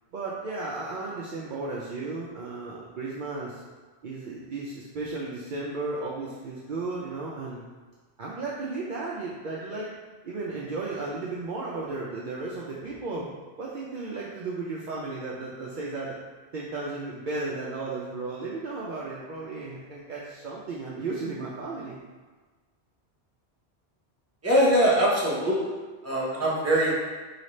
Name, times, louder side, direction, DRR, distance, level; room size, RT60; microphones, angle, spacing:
voice 1, 0.1-3.6 4.0-7.6 8.2-9.9 10.2-13.3 13.6-16.2 16.5-22.0, right 3 dB, 60° right, -5 dB, 0.6 m, -34 dB
voice 2, 24.4-25.7 26.0-26.9, equal, 15° right, -7 dB, 0.9 m, -22 dB
4.9 x 2.7 x 3.1 m, 1.4 s
omnidirectional pair, 1.1 m